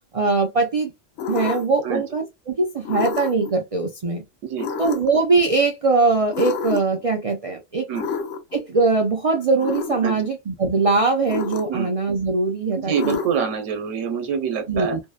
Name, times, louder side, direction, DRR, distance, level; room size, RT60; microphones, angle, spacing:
voice 1, 0.1-0.9 1.3-4.2 4.8-7.9 8.5-13.2 14.7-15.0, right 3 dB, 70° right, 0.3 m, -21 dB
sound 1, 1.2-1.9 2.9-3.5 4.6-5.2 6.3-7.0 7.9-8.6 9.6-10.0 11.3-11.9 12.9-13.6, left 6 dB, 75° left, 0.9 m, -29 dB
voice 2, 4.4-4.9 7.9-8.1 10.0-10.2 11.7-11.9 12.8-15.0, right 7 dB, 85° right, 1.0 m, -26 dB
2.7 x 2.0 x 2.2 m
omnidirectional pair, 1.3 m